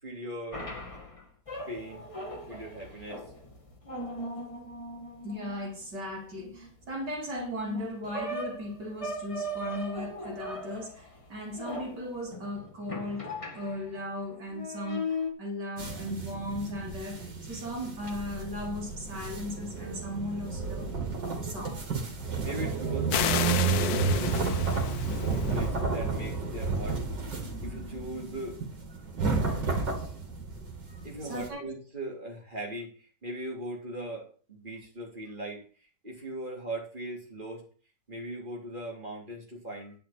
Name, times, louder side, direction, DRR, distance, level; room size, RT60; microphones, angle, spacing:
voice 1, 0.0-0.7 1.7-2.0 2.5-3.3 22.4-24.4 25.1-27.0 27.6-28.6 31.0-37.7 38.1-39.9, right 1 dB, 25° right, 3.3 m, -39 dB
sound 1, 0.5-14.1 14.5-15.3, left 1 dB, 20° left, 1.9 m, -39 dB
voice 2, 5.2-20.9 21.4-21.8 30.9-31.6, left 1 dB, 70° right, 3.6 m, -37 dB
sound 2, 15.8-31.5, right 4 dB, 85° right, 3.2 m, -31 dB
sound 3, 23.1-25.7, left 10 dB, 70° left, 1.1 m, -32 dB
10.5 x 5.8 x 7.1 m
omnidirectional pair, 1.9 m